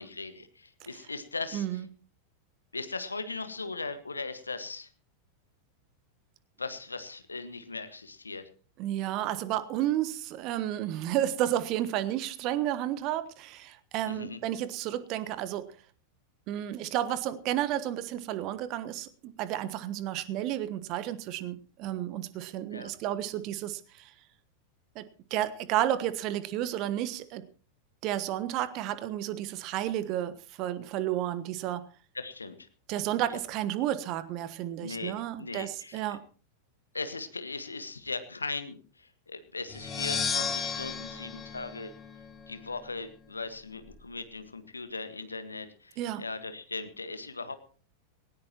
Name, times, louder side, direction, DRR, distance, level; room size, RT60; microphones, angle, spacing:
voice 1, 0.0-1.6 2.7-4.9 6.6-8.4 14.0-14.4 22.7-22.9 32.1-32.5 33.3-33.4 34.8-36.2 36.9-41.9 42.5-47.6, left 3 dB, 80° left, 11 dB, 1.5 m, -38 dB
voice 2, 1.5-1.9 8.8-15.7 16.5-24.1 24.9-27.4 28.0-31.9 32.9-36.2 46.0-46.2, right 12 dB, 40° right, 15 dB, 1.3 m, -32 dB
sound 1, 39.7-42.5, left 6 dB, 15° left, 2.9 m, -34 dB
19.0 x 17.5 x 3.0 m, 0.39 s
figure-of-eight pair, 90°, 0 cm